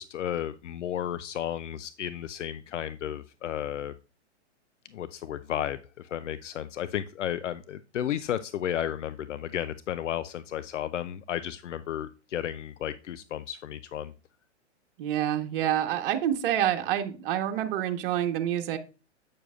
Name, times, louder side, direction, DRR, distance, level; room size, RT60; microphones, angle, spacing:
voice 1, 0.0-3.9 4.9-14.1, left 10 dB, 85° left, 14 dB, 0.6 m, -33 dB
voice 2, 15.0-18.8, right 11 dB, 50° right, 5 dB, 1.3 m, -27 dB
8.6 x 6.3 x 2.4 m, 0.32 s
hypercardioid pair, 130°, 35 cm